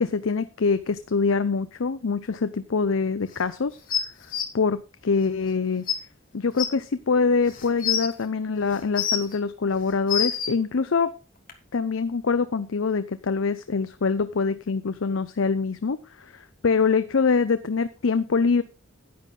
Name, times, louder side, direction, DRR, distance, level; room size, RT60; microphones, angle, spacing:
voice 1, 0.0-3.8 4.5-5.8 6.3-11.1 11.7-18.6, left 4 dB, 85° left, 12 dB, 0.6 m, -24 dB
sound 1, 3.9-4.4 5.5-5.6 5.9-6.0 6.6-6.7 7.5-8.1 8.7-9.4 9.8-10.5 11.5-11.6, left 8 dB, 40° left, 1.7 m, -26 dB
10.5 x 9.3 x 3.7 m, 0.33 s
head